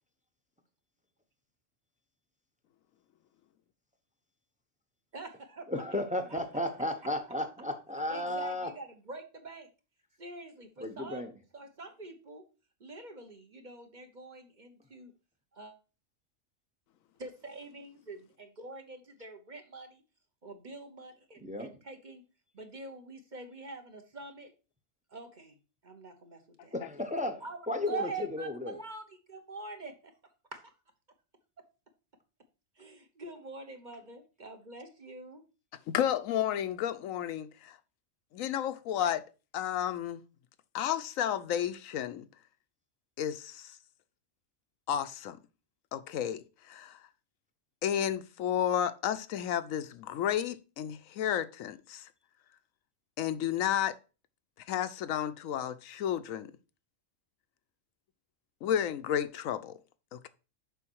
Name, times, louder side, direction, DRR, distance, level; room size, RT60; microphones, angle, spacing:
voice 1, 5.1-6.0 6.3-6.4 8.1-9.7 10.2-12.5 12.8-15.1 15.5-15.7 17.2-20.0 20.4-22.2 22.5-24.5 25.1-26.8 27.4-30.1 30.5-30.7 32.8-35.4, right 3 dB, 40° right, 1.0 m, -45 dB
voice 2, 5.7-8.7 10.8-11.3 21.4-21.7 26.7-28.0 28.3-28.7, left 1 dB, 5° right, 0.7 m, -34 dB
voice 3, 35.9-37.8 38.3-39.2 39.5-40.2 40.7-42.3 43.2-43.7 44.9-45.4 45.9-47.0 47.8-52.1 53.2-54.0 54.7-56.5 58.6-59.8 60.1-60.3, left 10 dB, 90° left, 1.0 m, -32 dB
6.9 x 5.3 x 4.6 m
omnidirectional pair, 1.4 m